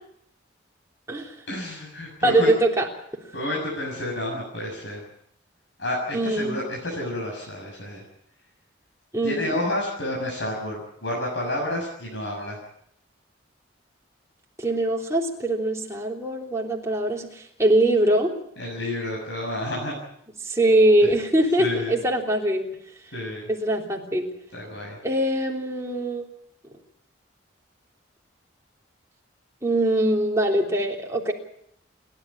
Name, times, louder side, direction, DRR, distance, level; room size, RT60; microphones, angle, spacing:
voice 1, 1.5-2.5 3.3-5.0 5.8-8.0 9.2-12.6 18.6-19.9 21.6-21.9 23.1-23.4 24.5-24.9, left 1 dB, 65° left, -2 dB, 6.9 m, -30 dB
voice 2, 2.2-2.9 6.1-6.6 9.1-9.6 14.6-18.3 20.4-22.7 23.5-24.3 25.0-26.2 29.6-31.3, right 1 dB, 15° right, -1 dB, 3.3 m, -22 dB
29.0 x 12.0 x 8.6 m, 0.73 s
head